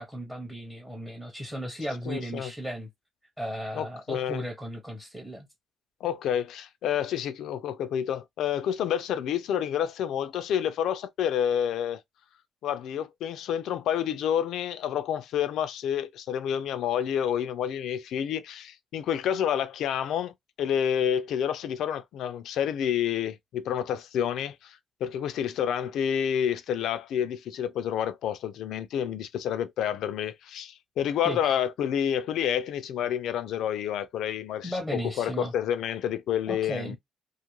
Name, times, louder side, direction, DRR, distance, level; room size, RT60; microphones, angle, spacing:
voice 1, 0.0-2.9 3.4-5.5 31.2-31.5 34.6-35.5 36.5-37.0, equal, 5° right, 0.6 m, -35 dB
voice 2, 2.1-2.5 3.8-4.4 6.0-12.0 12.6-37.0, left 9 dB, 85° left, 0.4 m, -29 dB
2.5 x 2.4 x 3.0 m
cardioid pair, 170°, 0 cm